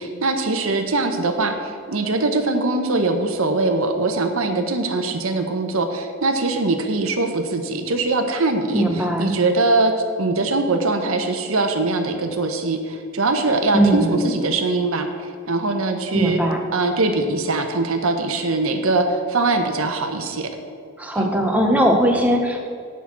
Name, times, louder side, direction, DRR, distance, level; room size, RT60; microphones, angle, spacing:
voice 1, 0.0-8.8 9.2-9.9 10.2-16.4 16.7-20.5 21.1-21.3, right 2 dB, 70° right, 6 dB, 0.9 m, -22 dB
voice 2, 8.7-9.3 13.7-14.2 16.1-16.6 21.0-22.7, right 1 dB, 5° right, 2 dB, 0.9 m, -19 dB
8.3 x 6.1 x 7.3 m, 2.3 s
head